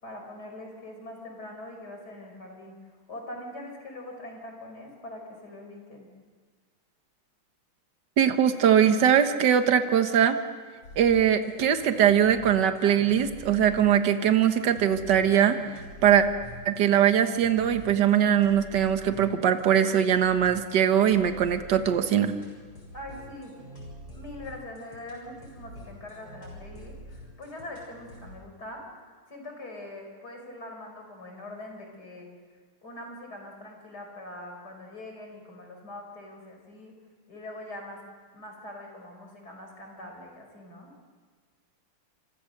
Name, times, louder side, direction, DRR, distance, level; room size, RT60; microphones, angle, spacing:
voice 1, 0.0-2.8 3.1-6.1 22.9-23.5 24.1-28.8 29.3-32.3 32.8-36.9 37.3-38.0 38.3-40.9, left 1 dB, 45° left, 2 dB, 5.9 m, -42 dB
voice 2, 8.2-10.4 11.0-15.6 16.0-16.2 16.6-22.3, right 9 dB, 55° right, 8 dB, 1.8 m, -21 dB
sound 1, 10.8-28.4, left 1 dB, 80° left, 7.3 m, -46 dB
29.0 x 26.0 x 6.6 m, 1.5 s
omnidirectional pair, 2.4 m